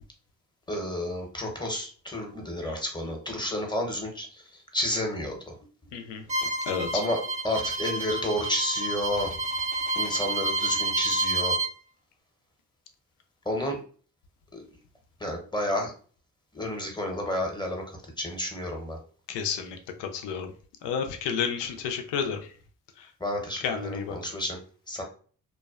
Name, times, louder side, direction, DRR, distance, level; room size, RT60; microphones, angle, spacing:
voice 1, 0.7-4.4 4.7-5.4 6.9-7.2 7.4-9.3 10.0-11.6 13.5-13.8 14.5-14.7 15.2-15.9 16.5-19.0 23.2-24.6 24.9-25.0, left 1 dB, 10° left, 1 dB, 0.8 m, -31 dB
voice 2, 5.9-6.2 6.7-7.0 19.3-20.5 20.8-22.5 23.0-23.1 23.6-24.3, left 7 dB, 80° left, 5 dB, 0.6 m, -31 dB
Bowed string instrument, 6.3-11.7, right 2 dB, 20° right, 0.5 m, -29 dB
2.5 x 2.1 x 2.3 m, 0.42 s
supercardioid pair, 50°, 42 cm